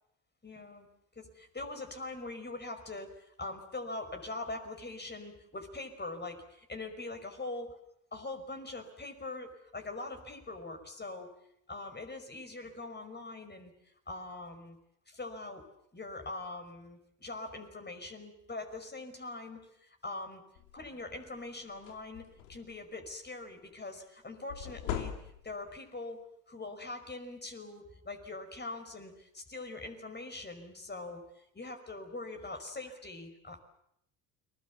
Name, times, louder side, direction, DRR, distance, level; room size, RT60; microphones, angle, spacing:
voice 1, 0.4-0.9 1.2-7.7 8.1-11.3 11.7-13.7 14.1-14.8 15.1-15.6 15.9-20.4 20.7-25.1 25.4-26.2 26.5-31.2 31.5-33.6, left 2 dB, 25° left, 6 dB, 5.6 m, -42 dB
sound 1, 20.5-20.8 21.3-21.4 21.7-22.8 24.5-25.7, left 10 dB, 80° left, 2.6 m, -40 dB
30.0 x 21.5 x 7.3 m, 0.74 s
hypercardioid pair, 65°, 44 cm